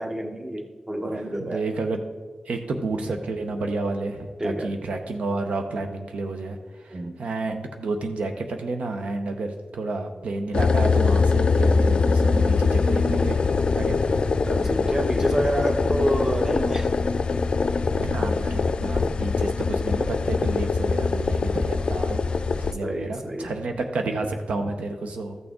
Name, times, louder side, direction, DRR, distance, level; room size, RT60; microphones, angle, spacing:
voice 1, 0.0-1.6 4.4-4.7 6.9-7.2 14.4-16.9 22.8-23.5, right 1 dB, 20° right, 5 dB, 0.9 m, -28 dB
voice 2, 1.0-2.0 2.5-13.5 13.7-14.2 17.8-22.3 22.5-25.4, right 3 dB, 85° right, 5 dB, 0.7 m, -30 dB
sound 1, 10.5-22.7, left 4 dB, 55° left, 0.4 m, -22 dB
13.5 x 6.1 x 3.6 m, 1.4 s
wide cardioid pair, 90°, 2 cm